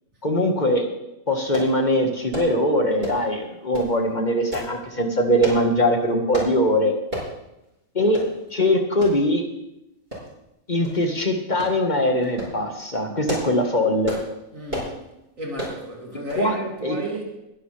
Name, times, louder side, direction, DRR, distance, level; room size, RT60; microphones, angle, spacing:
voice 1, 0.2-0.9 1.3-6.9 8.0-8.2 8.5-9.5 10.7-14.2 16.3-16.6 16.8-17.0, left 1 dB, 35° left, 1.7 m, -21 dB
sound 1, 1.5-1.7 2.3-2.5 3.0-3.3 3.7-3.9 4.5-4.7 5.4-5.6 6.3-6.5 7.1-7.3 7.7-7.8 8.1-8.3 9.0-9.2 10.1-10.5 10.8-11.0 11.6-11.8 12.2-12.6 13.1-13.6 14.0-14.3 14.7-14.9 15.6-15.8 16.3-16.5 16.8-16.9, equal, 45° right, 6.5 m, -31 dB
voice 2, 14.5-15.0 15.4-17.6, right 1 dB, 80° right, 3.1 m, -33 dB
21.5 x 11.5 x 3.4 m
omnidirectional pair, 1.4 m